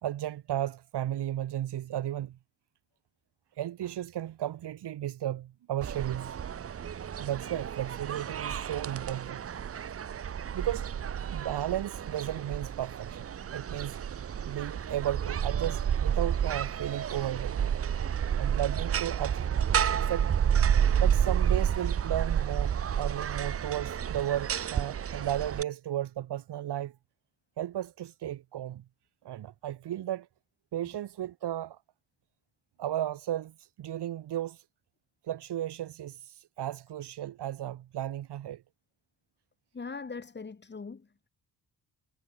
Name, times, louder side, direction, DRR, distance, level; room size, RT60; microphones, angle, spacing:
voice 1, 0.0-2.4 3.6-6.4 7.2-9.4 10.5-10.9 11.3-14.0 14.5-17.7 18.4-19.4 19.9-20.3 21.0-26.9 27.6-28.8 29.2-30.3 30.7-31.8 32.8-34.6 35.2-38.6, right 12 dB, 85° right, 2.4 m, -34 dB
sound 1, 5.8-25.6, right 8 dB, 35° right, 0.7 m, -30 dB
voice 2, 39.7-41.3, left 4 dB, 25° left, 6.0 m, -41 dB
wide cardioid pair, 160°, 39 cm